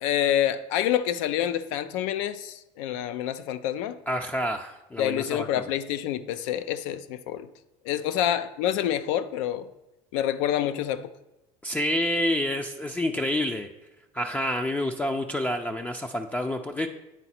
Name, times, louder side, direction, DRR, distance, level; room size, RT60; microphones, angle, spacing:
voice 1, 0.0-4.0 5.0-7.5 7.8-9.7 10.1-11.1, left 11 dB, 80° left, 0.4 m, -27 dB
voice 2, 4.1-5.6 8.2-8.3 11.6-13.7 14.1-16.9, left 1 dB, 10° left, 0.4 m, -28 dB
9.0 x 3.9 x 4.2 m
supercardioid pair, 90°, 16 cm